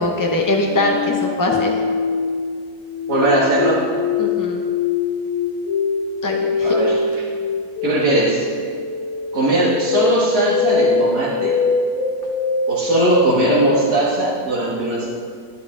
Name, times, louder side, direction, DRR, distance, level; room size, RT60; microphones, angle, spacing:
voice 1, 0.0-1.8 4.2-4.6 6.2-6.7, left 2 dB, 30° left, 1 dB, 0.4 m, -21 dB
sound 1, 0.6-13.9, left 4 dB, 65° left, 0.9 m, -22 dB
voice 2, 3.1-3.8 6.6-7.0 7.8-8.5 9.3-11.6 12.7-15.1, right 1 dB, 80° right, -7 dB, 2.1 m, -19 dB
12.5 x 9.6 x 3.7 m, 2.2 s
omnidirectional pair, 1.6 m